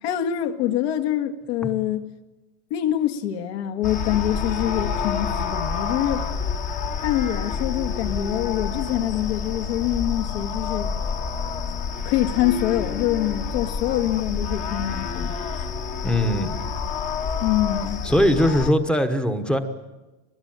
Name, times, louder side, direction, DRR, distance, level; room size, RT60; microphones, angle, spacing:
voice 1, 0.0-2.1 2.7-6.3 7.0-10.9 12.1-15.4 17.4-18.0, left 12 dB, 60° left, 1.9 m, -25 dB
sound 1, 3.8-18.7, left 5 dB, 20° left, 1.2 m, -28 dB
voice 2, 16.0-16.5 18.0-19.6, equal, 5° left, 1.1 m, -20 dB
24.0 x 21.0 x 8.9 m
supercardioid pair, 175°, 36 cm